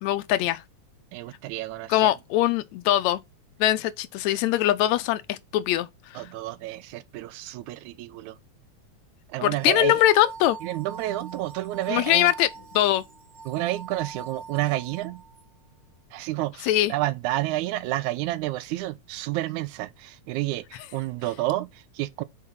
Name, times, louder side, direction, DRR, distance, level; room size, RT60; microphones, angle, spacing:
voice 1, 0.0-0.6 1.9-3.2 3.6-5.9 6.1-6.3 9.4-10.6 11.9-12.5 12.7-13.0 16.6-16.9, left 14 dB, 80° left, 1.8 m, -22 dB
voice 2, 1.1-2.1 6.2-8.4 9.3-10.0 10.6-12.3 13.5-15.2 16.1-22.2, right 16 dB, 85° right, 2.0 m, -30 dB
sound 1, 9.6-15.4, right 4 dB, 40° right, 1.5 m, -42 dB
5.5 x 4.6 x 5.4 m
omnidirectional pair, 3.4 m